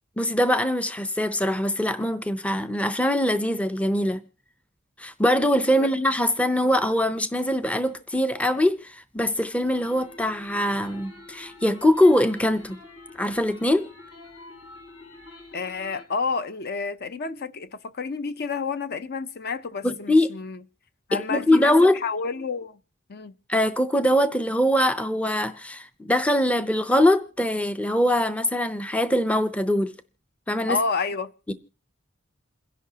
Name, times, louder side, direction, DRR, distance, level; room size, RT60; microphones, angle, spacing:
voice 1, 0.2-4.2 5.0-12.8 13.2-13.9 19.8-20.3 21.1-22.0 23.5-29.9 30.5-30.8 31.5-31.6, left 1 dB, 5° left, 0.5 m, -22 dB
sound 1, 9.6-16.0, left 2 dB, 85° left, 6.9 m, -46 dB
voice 2, 15.5-20.6 21.1-22.8 23.1-23.3 30.7-31.5, left 4 dB, 50° left, 0.6 m, -30 dB
28.0 x 11.0 x 2.8 m
head